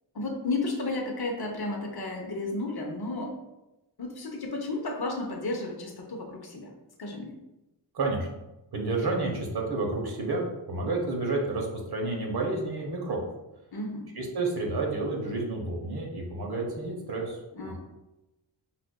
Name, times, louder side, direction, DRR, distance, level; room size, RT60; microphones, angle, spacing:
voice 1, 0.1-3.4 4.0-6.7 7.0-7.4 13.7-14.1 17.5-17.8, left 2 dB, 55° left, 1 dB, 0.8 m, -33 dB
voice 2, 7.9-8.3 8.7-13.3 14.1-17.4, right 2 dB, 60° right, 0 dB, 0.9 m, -30 dB
5.7 x 2.4 x 2.2 m, 0.96 s
wide cardioid pair, 100°, 44 cm